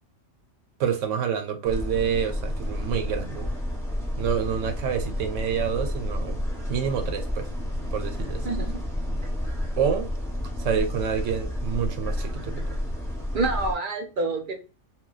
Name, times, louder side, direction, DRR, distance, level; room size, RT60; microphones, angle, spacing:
voice 1, 0.8-3.5 4.2-6.4 6.7-7.5 7.9-8.5 9.8-10.1 10.6-12.8, right 7 dB, 85° right, 1.0 m, -28 dB
sound 1, 1.6-13.7, left 1 dB, 5° left, 0.7 m, -30 dB
voice 2, 13.3-14.5, right 3 dB, 50° right, 0.7 m, -27 dB
2.2 x 2.1 x 3.8 m
omnidirectional pair, 1.3 m